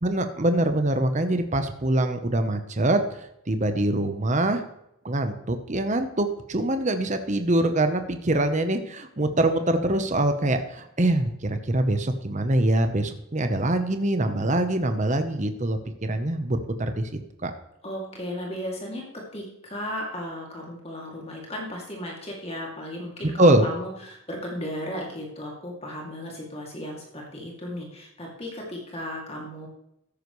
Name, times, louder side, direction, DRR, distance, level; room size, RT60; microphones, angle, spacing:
voice 1, 0.0-4.6 5.0-17.1 17.4-17.5 23.4-23.6, right 1 dB, 35° right, 8 dB, 0.9 m, -24 dB
voice 2, 17.8-29.7, equal, 25° left, -1 dB, 2.5 m, -35 dB
13.5 x 10.0 x 3.2 m, 0.82 s
head